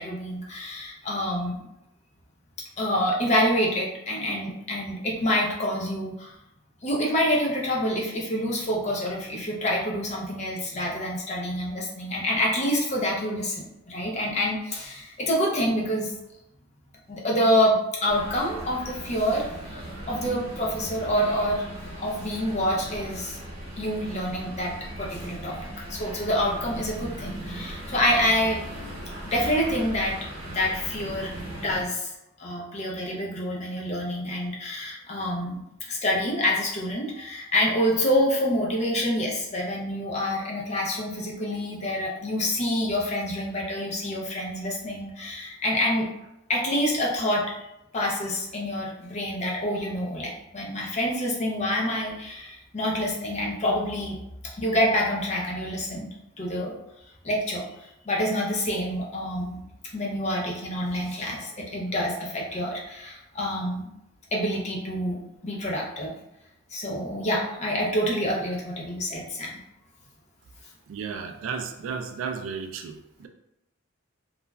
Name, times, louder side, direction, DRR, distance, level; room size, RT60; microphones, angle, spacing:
voice 1, 0.0-1.6 2.8-6.3 6.8-16.1 17.1-21.6 22.0-23.4 23.8-25.6 25.9-28.6 29.2-30.2 30.5-32.1 32.4-35.6 35.9-46.1 46.5-47.5 47.9-54.2 54.5-56.8 57.2-59.6 59.9-63.9 64.3-66.1 66.7-69.5, equal, 35° left, -2 dB, 0.5 m, -27 dB
sound 1, 18.1-31.8, right 1 dB, 85° right, 0.9 m, -38 dB
voice 2, 70.9-73.3, right 6 dB, 70° right, 6 dB, 0.3 m, -34 dB
3.0 x 2.3 x 2.2 m, 0.86 s
head